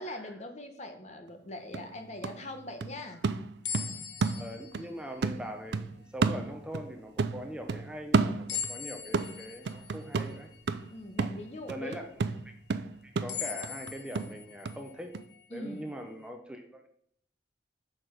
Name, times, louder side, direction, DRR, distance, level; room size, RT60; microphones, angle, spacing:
voice 1, 0.0-3.2 3.7-4.1 10.9-12.0 15.5-15.9, left 1 dB, 40° left, 6 dB, 1.0 m, -42 dB
sound 1, 1.3-1.4 1.7-4.9 5.2-6.9 7.2-8.8 9.1-14.8 15.1-15.2, right 4 dB, 70° right, 0.5 m, -32 dB
sound 2, 3.6-6.0 6.6-6.7 8.5-11.9 12.4-12.5 13.3-16.3, left 7 dB, 75° left, 0.7 m, -41 dB
voice 2, 4.4-10.5 11.7-12.1 12.4-12.6 13.0-15.2 15.5-16.9, equal, 5° right, 4 dB, 0.8 m, -42 dB
6.7 x 6.1 x 5.1 m, 0.65 s
head